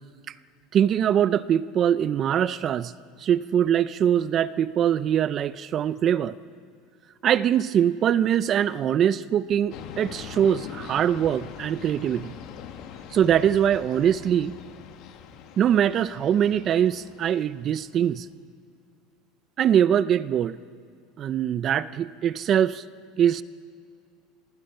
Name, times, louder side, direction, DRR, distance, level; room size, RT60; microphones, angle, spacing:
voice 1, 0.7-2.9 3.2-6.4 7.2-12.3 13.1-14.6 15.6-18.3 19.6-20.6 21.2-22.8 23.2-23.4, right 9 dB, 30° right, 17 dB, 0.4 m, -22 dB
sound 1, 9.7-18.0, left 8 dB, 45° left, 1.4 m, -43 dB
26.5 x 20.0 x 5.6 m, 2.2 s
cardioid pair, 165°, 0 cm